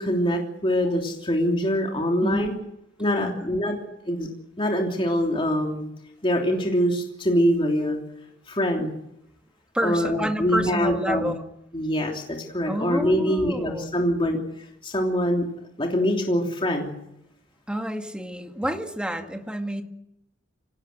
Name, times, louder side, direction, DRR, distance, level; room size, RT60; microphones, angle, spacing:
voice 1, 0.0-2.5 3.0-3.8 4.0-4.3 4.6-5.8 6.2-8.0 8.5-8.9 9.8-11.3 11.7-14.4 14.8-15.4 15.8-16.9, equal, 30° left, 1 dB, 3.2 m, -24 dB
voice 2, 2.2-2.6 3.2-3.7 9.7-11.4 12.7-13.9 17.7-19.8, equal, 5° right, 5 dB, 2.1 m, -29 dB
26.5 x 18.5 x 7.9 m, 0.81 s
head